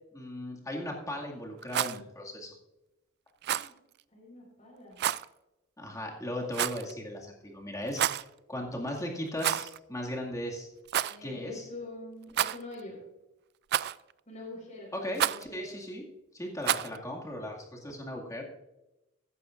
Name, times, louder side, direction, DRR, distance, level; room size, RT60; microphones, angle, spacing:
voice 1, 0.1-2.5 5.8-8.2 8.5-10.7 11.2-11.6 14.9-16.0 16.3-18.4, left 1 dB, 15° left, -1 dB, 2.1 m, -37 dB
Rattle, 1.6-2.0 3.4-3.7 5.0-5.3 6.5-6.9 7.9-8.3 9.4-9.8 10.1-10.2 10.9-11.2 12.3-12.8 13.7-14.1 15.2-15.5 16.6-17.0, right 11 dB, 55° right, 0.3 m, -29 dB
voice 2, 4.1-5.0 11.1-13.0 14.3-14.9 15.2-15.7, left 2 dB, 35° left, -2 dB, 4.6 m, -45 dB
15.0 x 11.0 x 2.5 m, 0.93 s
head